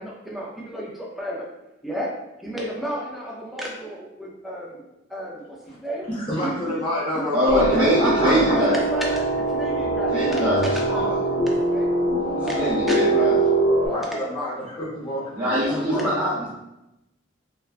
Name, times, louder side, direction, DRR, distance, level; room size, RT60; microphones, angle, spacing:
voice 1, 0.0-1.5 1.8-4.8 5.1-6.1 6.4-6.8 7.1-7.2 7.7-7.9 8.4-11.1 11.4-11.9 12.4-13.3 13.8-14.5 15.6-16.3, equal, ahead, -4 dB, 0.4 m, -33 dB
voice 2, 6.1-8.3 12.2-12.5 13.8-15.3 15.9-16.2, left 1 dB, 25° left, -6 dB, 0.7 m, -28 dB
voice 3, 7.3-8.8 10.1-11.2 12.3-13.4 15.3-16.5, equal, 25° right, -12 dB, 0.8 m, -23 dB
sound 1, 7.5-13.9, right 2 dB, 50° left, 1.0 m, -23 dB
3.2 x 2.3 x 2.4 m, 0.92 s
head